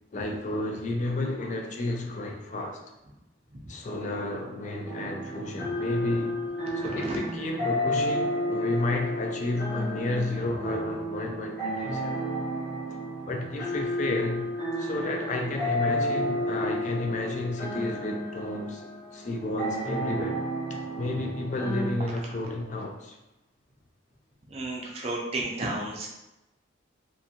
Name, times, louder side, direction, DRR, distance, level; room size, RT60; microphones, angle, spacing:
voice 1, 0.1-2.8 3.7-6.4 6.7-12.2 13.2-14.5 14.8-18.8 19.1-20.4 20.7-23.2, left 2 dB, 35° left, 0.3 m, -31 dB
sound 1, 4.8-21.9, equal, 50° left, 1.0 m, -32 dB
voice 2, 6.8-7.2 24.5-26.1, right 2 dB, 30° right, 0.5 m, -32 dB
2.5 x 2.5 x 2.7 m
head